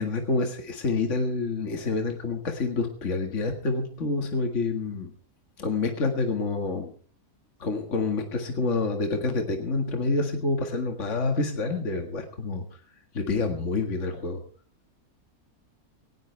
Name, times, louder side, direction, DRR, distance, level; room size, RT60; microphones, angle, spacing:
voice 1, 0.0-5.1 5.6-6.9 7.6-12.6 13.1-14.4, left 3 dB, 55° left, 5 dB, 2.2 m, -27 dB
18.5 x 17.0 x 3.4 m, 0.44 s
omnidirectional pair, 1.6 m